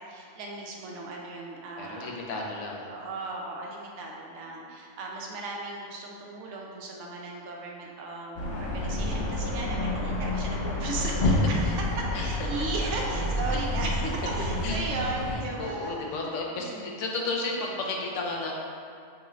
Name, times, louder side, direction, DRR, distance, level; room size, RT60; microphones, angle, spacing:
voice 1, 0.1-2.2 2.9-16.2 16.5-17.1, right 2 dB, 85° right, -1 dB, 0.9 m, -36 dB
voice 2, 1.8-2.9 11.2-11.3 12.1-12.3 13.5-13.6 14.0-14.1 14.6-14.8 15.3-18.5, left 3 dB, 85° left, -1 dB, 0.9 m, -33 dB
sound 1, 8.4-15.3, left 1 dB, 60° left, 0.8 m, -29 dB
4.7 x 2.4 x 3.0 m, 2.4 s
omnidirectional pair, 1.2 m